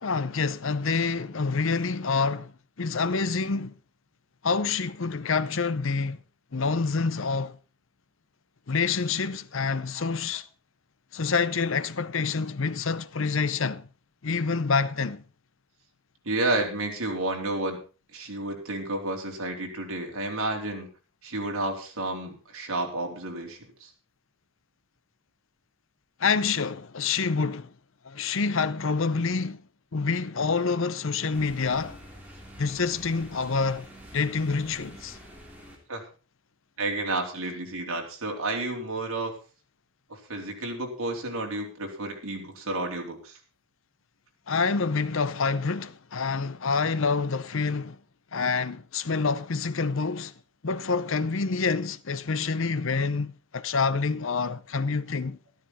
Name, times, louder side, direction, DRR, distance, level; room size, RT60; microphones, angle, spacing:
voice 1, 0.0-3.7 4.4-6.2 6.5-7.6 8.7-10.5 11.1-13.9 14.2-15.2 26.2-27.7 28.0-29.6 29.9-32.0 32.6-33.9 34.1-35.2 44.5-48.0 48.3-50.3 50.6-55.4, left 4 dB, 65° left, 0.7 m, -27 dB
voice 2, 16.2-17.8 18.1-20.9 21.2-23.9 35.9-36.0 36.8-39.3 40.1-43.4, right 2 dB, 75° right, 3.6 m, -31 dB
sound 1, 31.3-35.8, equal, 5° right, 3.2 m, -47 dB
13.0 x 13.0 x 4.2 m
head